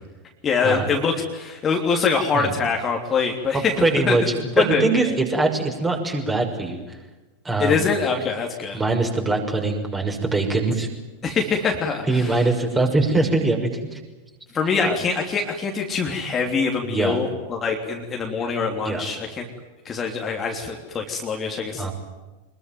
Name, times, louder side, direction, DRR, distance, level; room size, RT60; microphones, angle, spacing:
voice 1, 0.4-3.7 4.1-4.2 4.6-5.2 7.6-8.8 11.2-12.4 14.5-19.5 19.8-21.9, left 5 dB, 20° left, 2 dB, 3.3 m, -24 dB
voice 2, 3.5-7.0 7.4-7.9 8.7-10.9 12.1-14.0 14.8-15.0 16.8-17.2 18.8-19.0 21.7-21.9, right 3 dB, 15° right, 2 dB, 6.1 m, -22 dB
25.5 x 22.0 x 9.3 m, 1.2 s
figure-of-eight pair, 90°, 0 cm